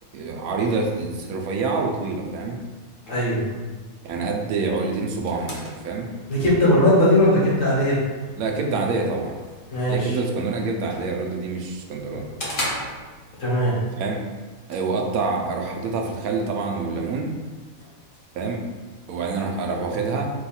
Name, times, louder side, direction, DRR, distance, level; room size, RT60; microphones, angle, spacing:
voice 1, 0.1-2.6 4.0-6.1 8.4-9.3 9.9-12.3 13.9-14.2 14.7-17.3 18.3-18.6 19.1-20.3, right 4 dB, 80° right, 1 dB, 1.1 m, -26 dB
voice 2, 3.1-3.4 6.3-8.0 9.7-10.2 13.4-13.7, left 1 dB, 65° left, -7 dB, 1.8 m, -19 dB
sound 1, 4.6-13.6, left 1 dB, 45° left, 0.8 m, -38 dB
4.7 x 2.3 x 4.2 m, 1.3 s
omnidirectional pair, 1.5 m